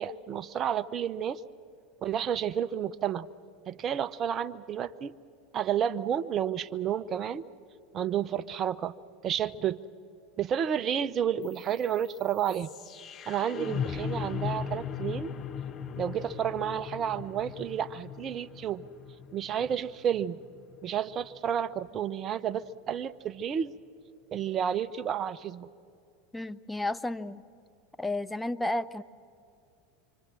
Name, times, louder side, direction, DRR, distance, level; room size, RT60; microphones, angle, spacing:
voice 1, 0.0-1.4 2.0-3.3 3.7-5.2 5.5-7.5 7.9-8.9 9.2-9.8 10.4-12.7 13.3-15.3 16.0-18.8 19.3-20.4 20.8-23.8 24.3-25.7, right 9 dB, 40° right, 14 dB, 0.6 m, -31 dB
sound 1, 11.4-21.5, left 7 dB, 35° left, 0.8 m, -38 dB
voice 2, 26.3-27.4 28.0-29.0, left 2 dB, 10° left, 13 dB, 0.6 m, -32 dB
26.0 x 25.0 x 7.5 m, 2.5 s
hypercardioid pair, 85°, 0 cm